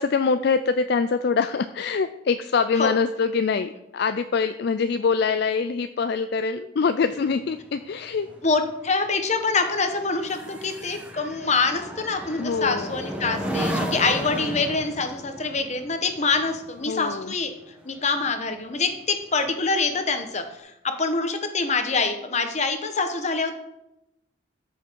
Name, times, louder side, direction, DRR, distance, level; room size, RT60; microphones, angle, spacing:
voice 1, 0.0-8.3 12.4-12.9 16.8-17.3, left 5 dB, 55° left, 11 dB, 0.4 m, -24 dB
sound 1, 7.1-18.8 19.2-19.5, equal, 5° right, 1.0 m, -35 dB
voice 2, 8.4-17.5 17.8-23.6, left 4 dB, 35° left, 6 dB, 1.1 m, -25 dB
13.5 x 5.8 x 4.6 m, 0.88 s
head